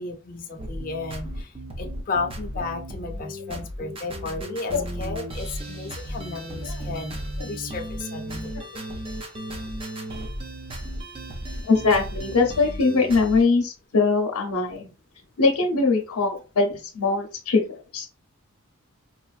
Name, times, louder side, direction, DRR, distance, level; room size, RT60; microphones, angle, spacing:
voice 1, 0.0-1.5 1.8-8.5, left 3 dB, 40° left, 3 dB, 0.6 m, -33 dB
sound 1, 0.6-13.4, equal, 25° right, 0.5 m, -35 dB
voice 2, 11.6-14.9 15.4-18.1, left 4 dB, 85° left, 2 dB, 0.7 m, -22 dB
4.1 x 2.4 x 2.3 m, 0.34 s
head